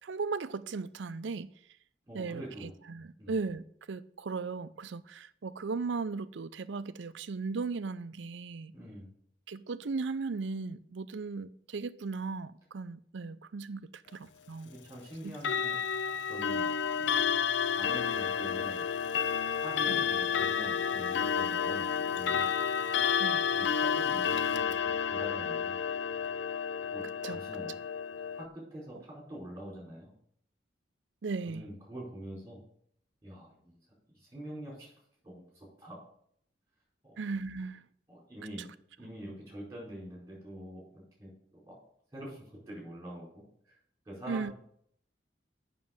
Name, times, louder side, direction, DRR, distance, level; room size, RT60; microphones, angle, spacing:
voice 1, 0.0-1.5 2.1-8.7 9.5-14.7 15.2-15.3 19.9-20.0 23.2-23.4 27.2-27.4 31.2-31.6 37.2-37.8 44.3-44.5, right 4 dB, 75° right, 0.5 m, -37 dB
voice 2, 2.0-2.7 3.2-3.3 8.7-9.1 14.6-15.8 16.3-17.3 17.6-18.9 19.6-22.5 23.5-25.8 26.9-27.8 28.3-30.1 31.5-32.6 33.2-33.8 34.1-36.0 37.0-37.2 38.1-38.7 39.0-41.8 42.1-43.8 44.1-44.5, equal, 15° right, 4.3 m, -45 dB
Clock, 15.3-28.5, left 7 dB, 70° left, 0.4 m, -30 dB
7.5 x 5.9 x 7.2 m
head